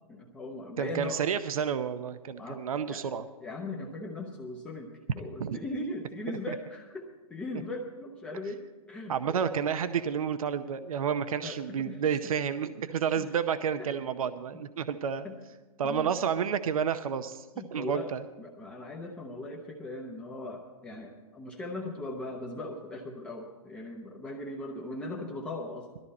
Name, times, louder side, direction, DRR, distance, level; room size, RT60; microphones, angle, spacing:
voice 1, 0.1-1.2 2.4-2.6 2.9-3.0 3.4-7.0 7.3-9.4 11.4-12.0 13.2-13.3 13.8-13.9 15.2-15.3 15.8-16.1 17.5-18.1 18.4-25.9, left 2 dB, 5° left, -1 dB, 0.7 m, -39 dB
voice 2, 0.8-3.3 5.4-5.6 6.5-6.6 9.1-15.3 15.8-17.4 17.7-18.2, right 7 dB, 70° right, 11 dB, 0.7 m, -30 dB
18.0 x 13.5 x 4.2 m, 1.3 s
hypercardioid pair, 165°, 19 cm